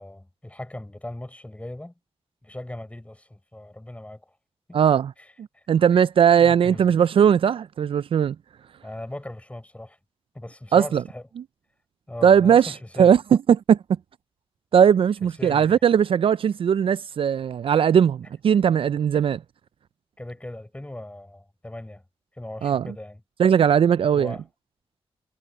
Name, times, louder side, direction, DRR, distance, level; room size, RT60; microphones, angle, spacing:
voice 1, 0.0-1.9 2.4-4.4 4.7-4.8 5.2-5.6 6.4-7.0 8.8-10.0 10.3-11.2 12.1-13.2 15.2-15.8 19.1-19.2 20.2-22.0 22.4-23.2 24.1-24.4, left 1 dB, 15° left, 7.0 m, -38 dB
voice 2, 4.7-5.1 5.7-8.4 10.7-11.0 12.2-12.7 13.0-13.8 14.7-19.4 22.6-22.9 23.4-24.4, right 8 dB, 65° right, 0.4 m, -18 dB
cardioid pair, 80°, 10 cm